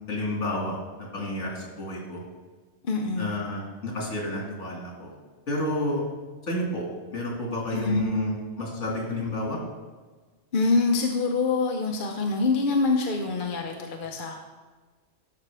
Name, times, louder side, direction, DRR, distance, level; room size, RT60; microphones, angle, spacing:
voice 1, 0.0-2.2 3.2-5.1 5.5-6.0 6.4-6.9 7.1-9.6, left 1 dB, 80° left, -2 dB, 2.3 m, -30 dB
voice 2, 2.8-3.3 7.7-8.0 10.5-14.4, left 3 dB, 50° left, 2 dB, 0.8 m, -25 dB
12.0 x 5.9 x 3.4 m, 1.4 s
omnidirectional pair, 1.2 m